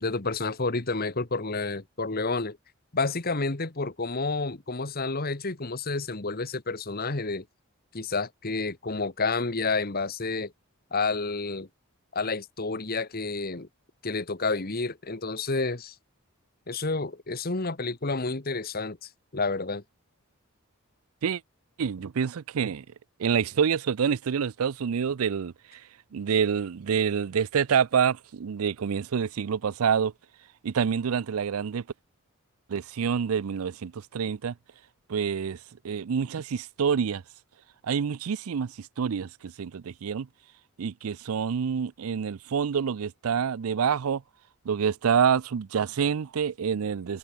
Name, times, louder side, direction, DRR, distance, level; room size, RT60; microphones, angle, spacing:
voice 1, 0.0-2.6 2.9-7.4 7.9-10.5 10.9-11.7 12.1-13.7 14.0-15.9 16.7-19.8, left 3 dB, 45° left, 1.6 m, -30 dB
voice 2, 21.8-22.8 23.2-25.8 26.1-30.1 30.6-31.8 32.7-34.5 35.1-35.6 35.8-37.2 37.8-40.3 40.8-44.2 44.7-47.2, right 7 dB, 85° right, 0.5 m, -27 dB
head